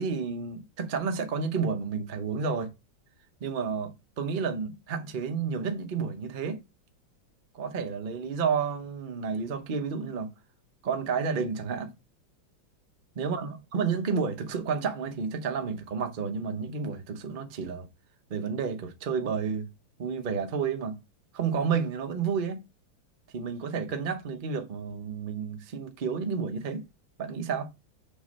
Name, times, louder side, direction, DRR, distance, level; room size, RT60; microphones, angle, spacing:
voice 1, 0.0-2.7 3.4-6.6 7.5-10.3 10.8-11.9 13.2-17.9 18.3-19.7 20.0-21.0 21.3-22.6 23.3-26.8 27.2-27.7, right 5 dB, 80° right, 0.4 m, -31 dB
6.8 x 3.2 x 5.1 m
omnidirectional pair, 2.2 m